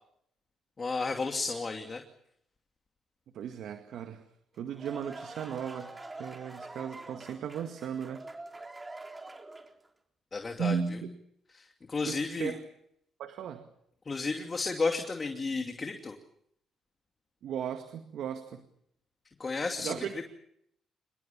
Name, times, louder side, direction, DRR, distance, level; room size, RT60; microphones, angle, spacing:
voice 1, 0.8-2.0 10.3-10.8 11.5-12.5 14.1-16.1 19.4-20.2, left 4 dB, 35° left, 5 dB, 2.6 m, -32 dB
voice 2, 3.3-4.2 4.6-8.3 10.6-11.1 12.1-12.6 13.2-13.7 17.4-18.7 19.8-20.2, right 7 dB, 70° right, 7 dB, 2.0 m, -36 dB
sound 1, 4.5-9.9, right 2 dB, 20° right, 3.9 m, -45 dB
26.5 x 21.0 x 7.2 m, 0.73 s
supercardioid pair, 70°, 0 cm